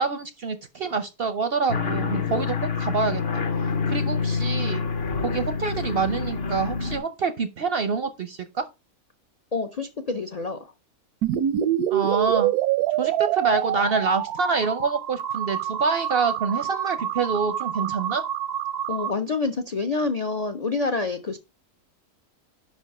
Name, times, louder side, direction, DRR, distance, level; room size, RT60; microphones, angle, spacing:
voice 1, 0.0-3.4 3.9-4.8 5.2-8.7 11.9-12.5 12.9-18.2, right 4 dB, 60° right, 0.6 m, -26 dB
sound 1, 1.7-7.0, left 5 dB, 45° left, 1.0 m, -27 dB
voice 2, 9.5-10.7 18.9-21.4, left 3 dB, 65° left, 0.3 m, -27 dB
sound 2, 11.2-19.1, right 11 dB, 85° right, 1.1 m, -26 dB
5.5 x 5.2 x 5.3 m
omnidirectional pair, 1.6 m